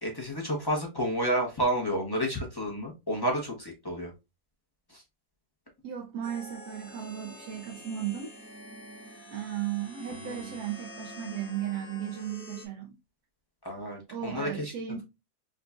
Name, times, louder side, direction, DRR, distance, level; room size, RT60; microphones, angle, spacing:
voice 1, 0.0-4.1 4.9-5.0 10.2-10.5 13.6-14.7, equal, 20° left, 0.6 m, -30 dB
voice 2, 5.8-8.3 9.3-13.0 14.1-15.0, right 10 dB, 75° right, 1.1 m, -35 dB
sound 1, 6.2-12.7, equal, 70° left, 1.7 m, -46 dB
4.8 x 2.3 x 2.4 m
omnidirectional pair, 1.7 m